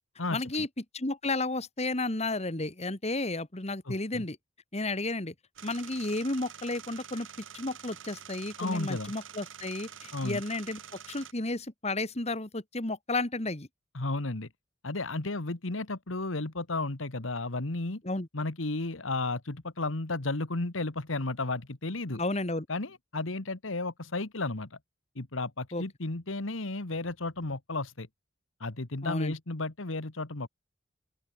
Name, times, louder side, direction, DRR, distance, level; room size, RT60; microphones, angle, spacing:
voice 1, 0.3-0.7 0.9-4.4 4.7-5.3 5.6-7.3 7.5-13.7 18.0-18.3 22.1-22.7 25.7-25.8 29.0-29.3, left 2 dB, 35° left, 1.9 m, -32 dB
voice 2, 3.8-4.2 8.6-9.1 10.1-10.4 13.9-14.5 14.8-18.0 18.3-22.2 22.7-24.8 25.1-28.1 28.6-30.5, left 2 dB, 85° left, 1.8 m, -33 dB
sound 1, 5.6-11.3, right 8 dB, 75° right, 2.3 m, -47 dB
open air
head